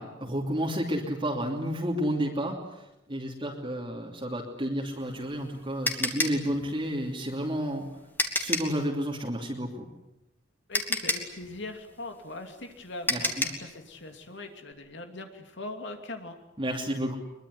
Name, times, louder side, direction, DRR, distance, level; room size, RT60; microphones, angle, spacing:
voice 1, 0.0-7.9 8.3-9.9 13.1-13.5 16.6-17.1, equal, 25° right, -1 dB, 3.0 m, -31 dB
sound 1, 4.9-8.8 10.2-10.3 10.7-13.7, left 2 dB, 10° left, 2.6 m, -30 dB
voice 2, 10.7-16.3, left 2 dB, 60° left, 5 dB, 2.8 m, -41 dB
23.5 x 23.0 x 9.6 m, 0.91 s
head